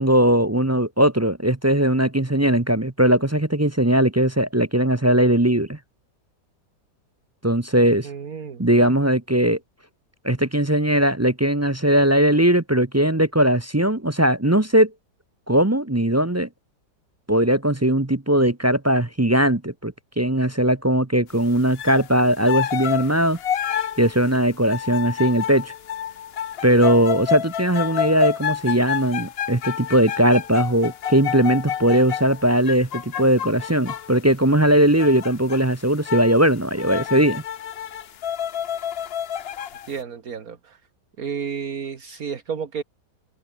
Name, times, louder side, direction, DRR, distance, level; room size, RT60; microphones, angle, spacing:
voice 1, 0.0-5.8 7.4-8.1 8.6-9.6 10.2-14.9 15.5-16.5 17.3-23.4 24.0-25.7 26.6-37.4, right 1 dB, 15° right, 0.6 m, -19 dB
voice 2, 8.0-8.9 39.9-40.8 41.2-42.8, right 6 dB, 55° right, 2.2 m, -31 dB
sound 1, 21.7-22.1 22.4-34.2 35.0-35.6 36.0-36.4 36.7-39.9, left 9 dB, 55° left, 0.7 m, -29 dB
omnidirectional pair, 1.9 m